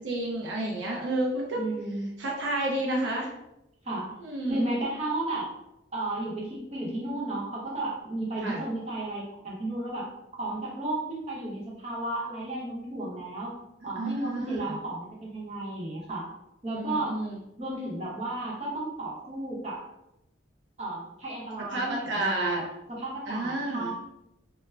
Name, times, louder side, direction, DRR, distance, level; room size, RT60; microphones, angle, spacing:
voice 1, 0.0-1.6 2.2-3.3 4.2-4.6 8.4-8.6 14.0-14.8 16.7-17.4 21.7-22.6 23.3-23.9, right 1 dB, 70° right, -2 dB, 0.4 m, -30 dB
voice 2, 1.5-2.1 3.8-4.1 4.5-5.4 5.9-10.1 10.4-13.5 13.8-16.3 16.6-17.2 17.6-19.8 20.8-23.9, right 2 dB, 35° right, -4 dB, 0.7 m, -33 dB
2.2 x 2.0 x 3.3 m, 0.88 s
head